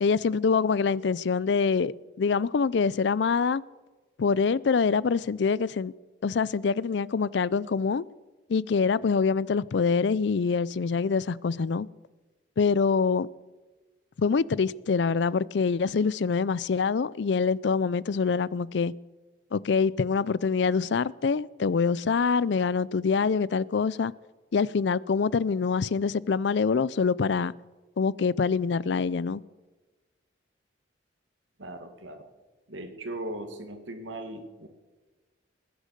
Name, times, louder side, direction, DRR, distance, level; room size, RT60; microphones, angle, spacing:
voice 1, 0.0-3.6 4.2-5.9 6.2-8.0 8.5-11.9 12.6-13.3 14.2-18.9 19.5-24.1 24.5-27.5 28.0-29.4, left 5 dB, 65° left, 22 dB, 0.4 m, -25 dB
voice 2, 31.6-32.3 32.7-34.7, right 1 dB, 85° right, 7 dB, 2.2 m, -38 dB
20.0 x 10.0 x 6.6 m, 1.2 s
head